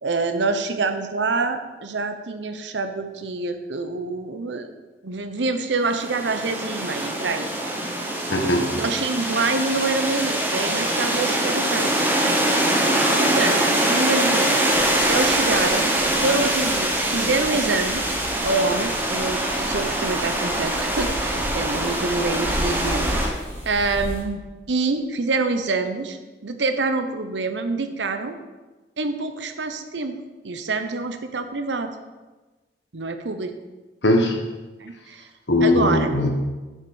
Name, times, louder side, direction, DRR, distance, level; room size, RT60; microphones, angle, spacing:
voice 1, 0.0-4.7 5.0-7.5 8.7-12.1 13.2-14.6 15.1-15.9 16.2-18.2 18.4-23.4 23.6-24.4 24.7-26.2 26.4-28.4 29.0-30.2 30.4-31.9 32.9-33.6 34.8-35.3 35.6-36.1, right 3 dB, 85° right, 8 dB, 0.9 m, -26 dB
sound 1, 5.9-23.3, right 1 dB, 10° right, 1.2 m, -23 dB
voice 2, 8.3-8.7 34.0-34.4 35.5-36.3, left 1 dB, 80° left, 2 dB, 1.5 m, -20 dB
sound 2, 14.7-24.2, equal, 15° left, 3.6 m, -34 dB
7.2 x 6.8 x 6.4 m, 1.2 s
head